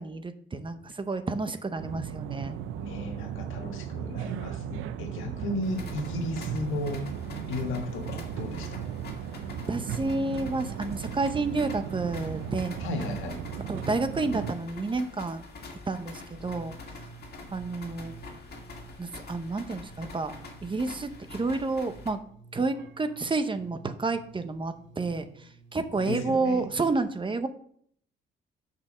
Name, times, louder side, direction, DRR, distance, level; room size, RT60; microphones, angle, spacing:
voice 1, 0.0-2.6 9.7-12.8 13.7-15.5 15.9-16.8 17.5-18.1 19.0-20.3 20.6-22.2 22.5-27.5, right 3 dB, 25° right, 9 dB, 0.9 m, -30 dB
sound 1, 1.8-14.5, right 9 dB, 85° right, 0.6 m, -36 dB
voice 2, 2.8-7.1 7.5-8.9 12.8-13.4 26.0-26.7, left 2 dB, 85° left, 4 dB, 1.5 m, -34 dB
sound 2, 5.6-22.1, left 3 dB, 55° left, 2.0 m, -45 dB
sound 3, 16.3-26.8, right 5 dB, 70° right, 1.1 m, -52 dB
6.8 x 5.5 x 6.2 m, 0.62 s
cardioid pair, 90°, 20 cm